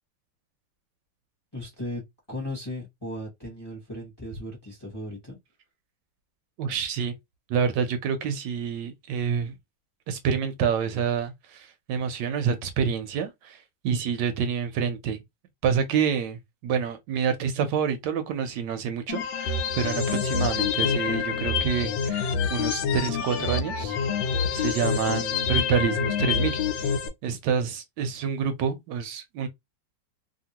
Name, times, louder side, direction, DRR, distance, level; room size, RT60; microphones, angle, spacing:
voice 1, 1.5-5.4, left 1 dB, 15° left, 0.9 m, -36 dB
voice 2, 6.6-7.1 7.5-9.5 10.1-15.2 15.6-24.0 24.5-26.9 27.2-29.5, right 7 dB, 75° right, 1.1 m, -28 dB
sound 1, 19.1-27.1, left 6 dB, 85° left, 1.3 m, -27 dB
2.9 x 2.6 x 2.7 m
omnidirectional pair, 2.0 m